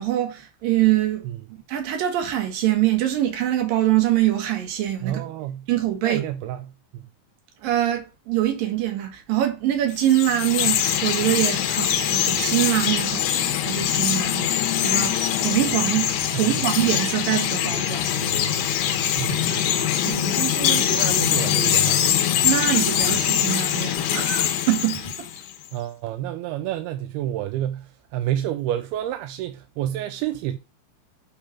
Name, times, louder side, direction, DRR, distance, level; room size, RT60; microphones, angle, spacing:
voice 1, 0.0-1.3 1.7-5.2 5.7-6.2 7.6-18.1 20.0-20.8 22.4-25.3, right 13 dB, 65° right, 3.2 m, -24 dB
voice 2, 5.0-5.7 6.0-7.1 16.3-16.6 19.2-19.9 20.7-22.1 25.7-30.6, right 12 dB, 85° right, 2.5 m, -29 dB
Chirp tweet, 9.9-25.5, left 10 dB, 85° left, 3.1 m, -23 dB
sound 1, 17.7-25.1, left 4 dB, 35° left, 0.7 m, -38 dB
8.9 x 3.6 x 5.7 m
omnidirectional pair, 4.6 m